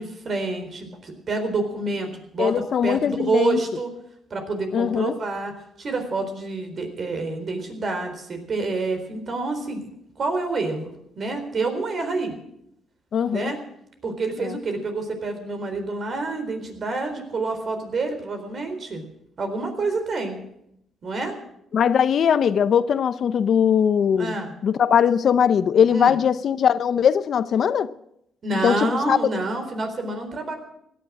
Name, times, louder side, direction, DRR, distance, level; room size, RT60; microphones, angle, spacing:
voice 1, 0.0-2.5 2.8-3.9 4.3-5.5 5.8-9.9 10.2-12.3 13.3-13.6 14.0-19.0 19.4-20.4 21.0-21.3 24.2-24.5 25.9-26.1 28.4-30.6, right 3 dB, 50° right, 4.0 m, -28 dB
voice 2, 2.4-3.6 4.7-5.1 13.1-13.5 14.4-14.6 21.7-24.4 24.6-27.9 28.6-29.2, left 8 dB, 60° left, 0.6 m, -20 dB
16.5 x 10.5 x 7.5 m
cardioid pair, 90°, 0 cm